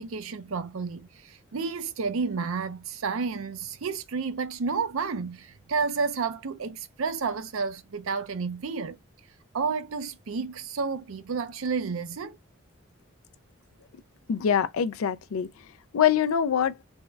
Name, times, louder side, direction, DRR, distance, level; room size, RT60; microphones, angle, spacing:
voice 1, 0.0-9.0 9.5-12.4, right 5 dB, 80° right, 0.5 m, -31 dB
voice 2, 14.3-15.5 15.9-16.7, left 8 dB, 85° left, 0.4 m, -24 dB
3.5 x 2.1 x 3.2 m
head